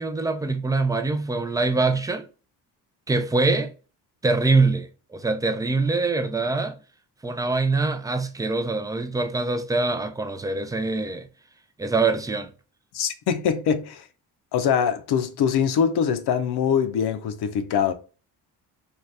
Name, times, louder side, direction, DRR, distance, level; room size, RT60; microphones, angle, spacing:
voice 1, 0.0-2.3 3.1-3.7 4.2-6.8 7.2-11.3 11.8-12.5, right 3 dB, 10° right, 0.4 m, -24 dB
voice 2, 12.9-14.1 14.5-17.9, left 7 dB, 70° left, 0.6 m, -23 dB
2.7 x 2.4 x 3.3 m
cardioid pair, 95°, 41 cm